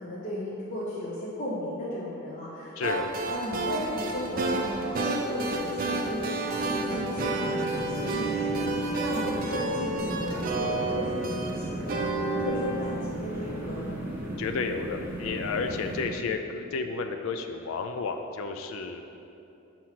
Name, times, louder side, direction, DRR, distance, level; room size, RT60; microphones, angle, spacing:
voice 1, 0.0-3.0 3.3-13.9, left 1 dB, 35° left, -7 dB, 0.7 m, -35 dB
sound 1, 2.8-13.9, right 2 dB, 40° right, 0.4 m, -31 dB
sound 2, 5.7-16.1, right 1 dB, 10° right, 0.7 m, -36 dB
voice 2, 14.4-19.1, left 4 dB, 70° left, 6 dB, 0.3 m, -32 dB
6.1 x 2.9 x 5.7 m, 2.8 s
head